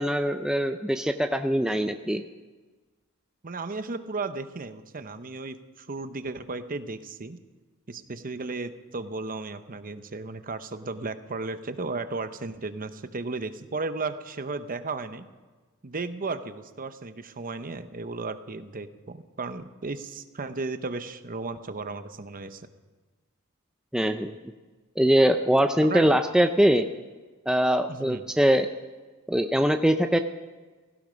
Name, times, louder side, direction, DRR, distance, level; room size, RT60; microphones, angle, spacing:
voice 1, 0.0-2.2 23.9-24.4 25.0-26.9 27.5-28.7 29.3-30.2, equal, 5° right, 7 dB, 0.5 m, -22 dB
voice 2, 3.4-7.4 7.9-15.3 15.8-22.7 25.8-26.2 27.9-28.3, right 3 dB, 40° right, 10 dB, 0.9 m, -35 dB
17.5 x 16.0 x 5.2 m, 1.3 s
head